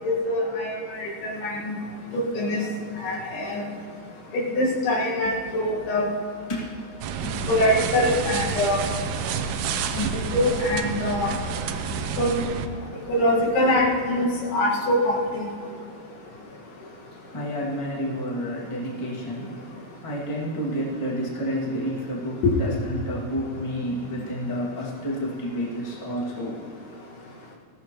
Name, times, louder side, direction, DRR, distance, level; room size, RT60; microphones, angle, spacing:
voice 1, 0.0-1.8 2.1-2.7 3.0-3.7 4.3-6.1 7.5-8.8 9.9-11.3 12.2-12.3 13.1-15.5 22.4-22.5, left 1 dB, 80° left, -3 dB, 3.8 m, -24 dB
sound 1, 7.0-12.7, right 6 dB, 90° right, 1.8 m, -29 dB
voice 2, 9.9-10.3 17.3-19.5 20.0-26.6, equal, 15° left, -5 dB, 1.2 m, -30 dB
20.0 x 15.0 x 3.1 m, 2.3 s
omnidirectional pair, 4.5 m